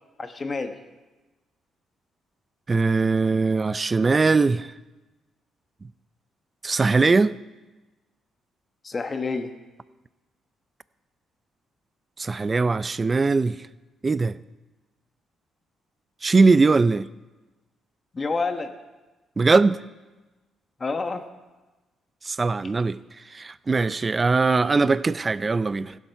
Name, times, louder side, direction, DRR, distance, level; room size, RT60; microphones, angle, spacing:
voice 1, 0.2-0.8 8.8-9.5 18.1-18.7 20.8-21.3, left 4 dB, 30° left, 1.2 m, -28 dB
voice 2, 2.7-4.7 6.6-7.3 12.2-13.6 14.0-14.4 16.2-17.1 19.4-19.8 22.2-23.0 23.3-26.0, right 4 dB, 30° right, 0.4 m, -20 dB
16.0 x 7.3 x 5.7 m
cardioid pair, 90°, 0 cm